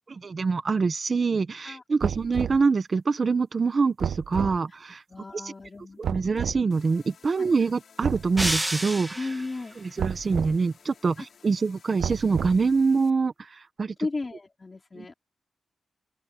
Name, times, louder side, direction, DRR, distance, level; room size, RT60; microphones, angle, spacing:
voice 1, 0.2-5.0 5.3-5.5 6.0-9.1 9.8-13.9 15.0-15.1, right 4 dB, 45° right, 1.3 m, -25 dB
sound 1, 2.0-2.7 4.0-4.6 6.0-6.6 8.0-8.6 10.0-10.6 12.0-12.7, right 8 dB, 85° right, 0.4 m, -31 dB
voice 2, 5.1-6.0 7.4-7.5 9.2-9.7 11.2-11.3 14.0-15.1, left 3 dB, 30° left, 4.5 m, -34 dB
sound 2, 6.7-13.1, left 7 dB, 75° left, 6.5 m, -56 dB
sound 3, 8.4-9.6, right 1 dB, 10° right, 1.8 m, -29 dB
open air
wide cardioid pair, 100°, 0 cm